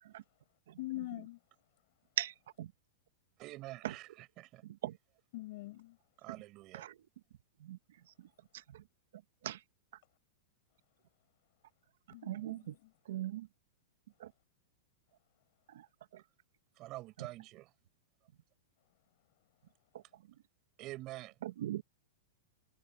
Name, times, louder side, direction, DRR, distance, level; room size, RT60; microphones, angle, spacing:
voice 1, 0.8-1.4 5.3-6.0 12.1-12.6, left 19 dB, 50° left, 5.8 m, -43 dB
voice 2, 2.2-2.7 3.8-3.9 4.6-5.0 6.3-6.4 6.7-7.0 7.6-8.3 8.5-8.8 9.1-9.6 12.1-12.8 13.0-13.5 14.2-14.3 15.7-15.9 16.1-16.2 17.2-17.3 19.9-20.2 21.4-21.8, right 13 dB, 70° right, 1.4 m, -41 dB
voice 3, 3.4-4.1 4.4-4.6 6.2-6.9 16.8-17.7 20.8-21.3, right 18 dB, 30° right, 7.9 m, -46 dB
supercardioid pair, 155°, 0 cm